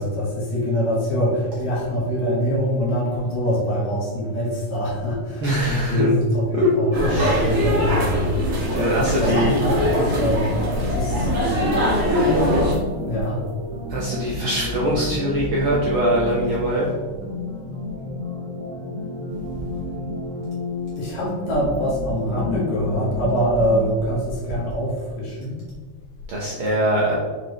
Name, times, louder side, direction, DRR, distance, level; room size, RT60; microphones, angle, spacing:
voice 1, 0.0-5.6 5.9-8.2 9.2-11.3 13.0-13.8 21.0-25.6, equal, 70° left, -4 dB, 2.7 m, -24 dB
voice 2, 5.4-6.1 6.6-6.7 7.1-7.5 8.7-9.5 13.9-16.9 26.3-27.1, equal, 65° right, -5 dB, 1.4 m, -22 dB
sound 1, 6.9-12.7, equal, 50° right, 2.3 m, -21 dB
sound 2, 8.4-24.2, equal, 90° right, 0.6 m, -32 dB
7.4 x 4.6 x 3.1 m, 1.5 s
omnidirectional pair, 3.3 m